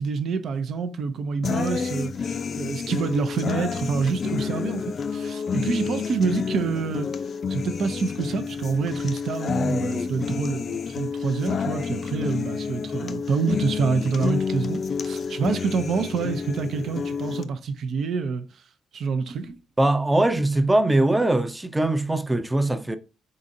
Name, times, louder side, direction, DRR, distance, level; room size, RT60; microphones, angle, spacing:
voice 1, 0.0-4.8 5.1-7.1 7.5-18.4 18.9-19.6, right 5 dB, 65° right, 0.6 m, -27 dB
sound 1, 1.4-17.4, left 6 dB, 50° left, 0.4 m, -29 dB
voice 2, 19.8-23.0, right 2 dB, 15° right, 0.5 m, -21 dB
4.0 x 3.8 x 2.6 m
cardioid pair, 90°, 0 cm